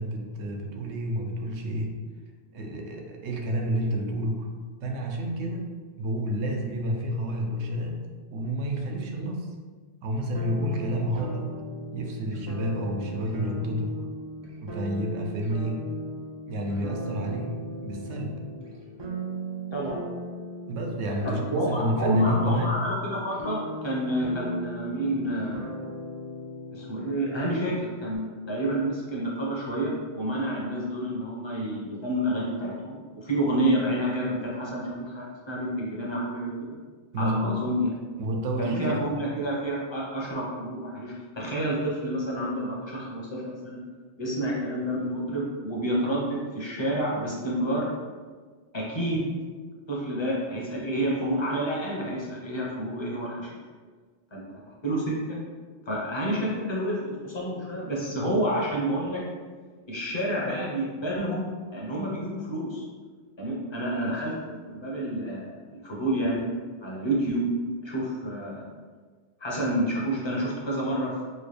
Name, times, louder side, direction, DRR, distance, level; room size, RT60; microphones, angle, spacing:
voice 1, 0.0-1.9 2.5-4.5 4.8-5.7 6.0-8.0 8.3-9.5 10.0-11.6 11.9-13.9 14.6-15.9 16.5-18.4 20.7-22.8 37.1-37.6 38.2-39.1, equal, 80° right, 1 dB, 0.9 m, -29 dB
sound 1, 10.3-28.2, equal, 35° right, 0.4 m, -38 dB
voice 2, 21.2-25.6 26.7-36.6 37.2-37.9 38.6-43.8 44.2-47.9 48.7-49.3 49.9-53.5 54.3-54.4 54.8-55.4 55.9-59.2 59.9-62.8 63.4-64.4 64.7-65.6 65.8-66.4 66.8-67.4 67.8-68.7 69.4-71.1, right 1 dB, 30° left, -4 dB, 0.7 m, -29 dB
4.2 x 2.2 x 3.2 m, 1.5 s
omnidirectional pair, 1.2 m